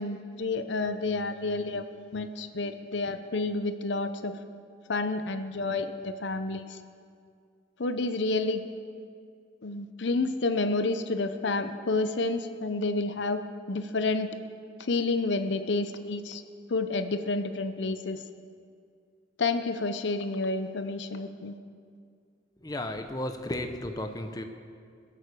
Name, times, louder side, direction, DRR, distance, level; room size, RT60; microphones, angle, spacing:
voice 1, 0.0-1.8 2.1-4.4 4.9-6.8 7.8-8.6 9.6-13.4 13.7-14.3 14.8-16.4 16.7-18.2 19.4-21.6, left 3 dB, 75° left, 9 dB, 0.7 m, -29 dB
voice 2, 22.6-24.4, left 1 dB, 20° left, 6 dB, 0.8 m, -34 dB
21.0 x 8.5 x 6.8 m, 2.2 s
head